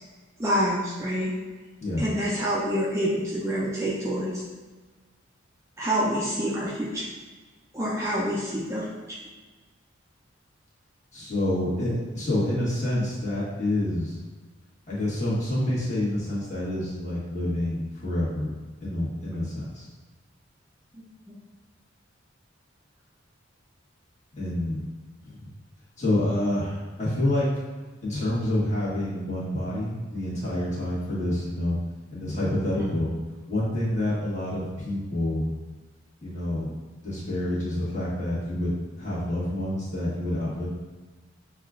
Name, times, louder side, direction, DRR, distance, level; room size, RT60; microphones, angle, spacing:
voice 1, 0.4-1.3 2.0-4.4 5.8-7.1 7.7-9.2 20.9-21.4 32.8-32.9, equal, 15° right, -6 dB, 0.4 m, -27 dB
voice 2, 11.1-14.2 14.9-18.5 18.8-19.9 24.4-24.8 25.2-25.5 26.0-27.5 28.0-31.8 32.1-33.1 33.5-35.5 36.2-36.7 37.0-40.7, left 1 dB, 35° left, -8 dB, 1.3 m, -28 dB
6.3 x 2.3 x 2.4 m, 1.3 s
head